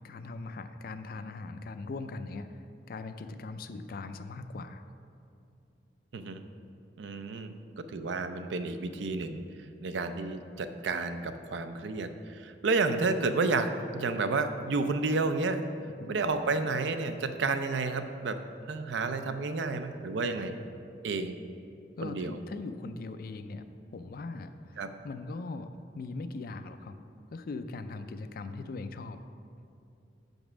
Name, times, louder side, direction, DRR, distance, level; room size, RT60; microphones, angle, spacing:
voice 1, 0.0-4.8 16.0-16.2 22.0-23.6 23.9-24.8 25.0-25.7 25.9-27.0 27.3-29.2, left 3 dB, 55° left, 10 dB, 0.4 m, -40 dB
voice 2, 7.0-9.4 9.8-15.6 16.1-20.6 21.0-21.4 22.0-22.4 24.8-24.9, right 3 dB, 75° right, 9 dB, 0.5 m, -31 dB
6.0 x 5.3 x 6.1 m, 2.6 s
head